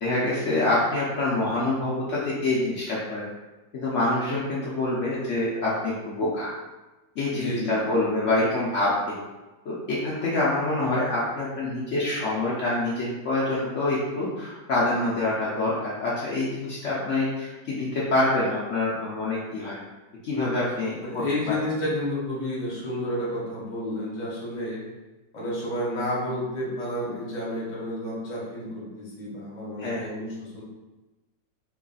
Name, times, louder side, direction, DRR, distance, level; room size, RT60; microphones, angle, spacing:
voice 1, 0.0-3.2 3.7-6.5 7.2-9.1 9.7-19.8 20.2-21.2 29.8-30.1, left 2 dB, 85° left, -7 dB, 0.6 m, -26 dB
voice 2, 7.3-7.9 16.9-17.0 21.0-24.8 25.3-30.6, left 1 dB, 40° left, -5 dB, 0.6 m, -31 dB
3.1 x 2.3 x 3.8 m, 1.1 s
omnidirectional pair, 2.1 m